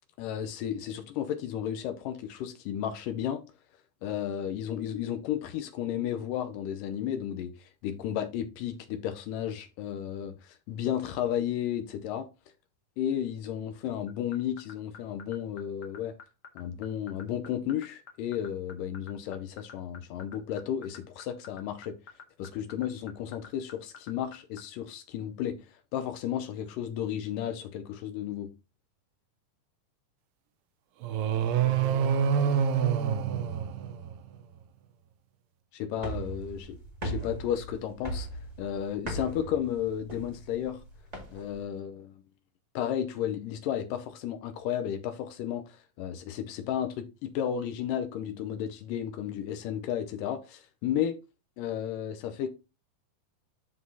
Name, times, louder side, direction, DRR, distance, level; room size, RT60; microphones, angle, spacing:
voice 1, 0.2-3.4 4.0-12.3 13.0-16.1 16.6-22.0 22.4-28.5 35.7-38.3 38.6-40.8 41.3-42.2 42.8-51.1 51.6-52.5, left 10 dB, 80° left, 2.3 m, -33 dB
sound 1, 14.1-24.6, left 6 dB, 50° left, 2.1 m, -46 dB
sound 2, 31.0-34.4, right 7 dB, 90° right, 2.4 m, -26 dB
sound 3, 35.9-41.6, right 1 dB, 15° right, 1.4 m, -39 dB
12.5 x 4.1 x 2.7 m
omnidirectional pair, 3.9 m